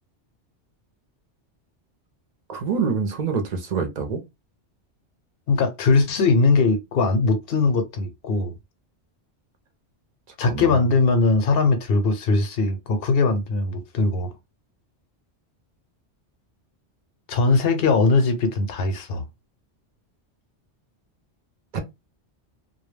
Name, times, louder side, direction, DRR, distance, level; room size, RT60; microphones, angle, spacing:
voice 1, 2.5-4.2 10.5-10.8 21.7-21.8, right 5 dB, 50° right, 0.6 m, -26 dB
voice 2, 5.5-8.5 10.4-14.3 17.3-19.3, left 3 dB, 60° left, 0.7 m, -20 dB
2.2 x 2.2 x 3.2 m
omnidirectional pair, 1.2 m